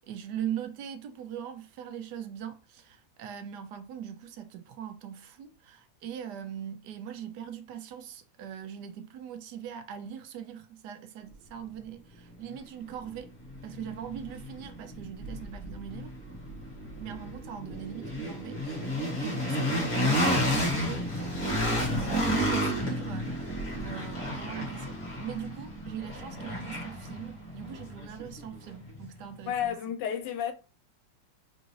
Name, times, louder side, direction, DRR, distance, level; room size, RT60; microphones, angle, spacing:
voice 1, 0.1-13.3 13.6-16.1 17.0-29.8, right 9 dB, 75° right, 1.1 m, -41 dB
sound 1, 12.6-12.7 13.1-29.1, equal, 20° left, 1.6 m, -32 dB
voice 2, 29.5-30.5, left 9 dB, 75° left, 1.2 m, -31 dB
3.7 x 3.7 x 3.1 m
omnidirectional pair, 1.9 m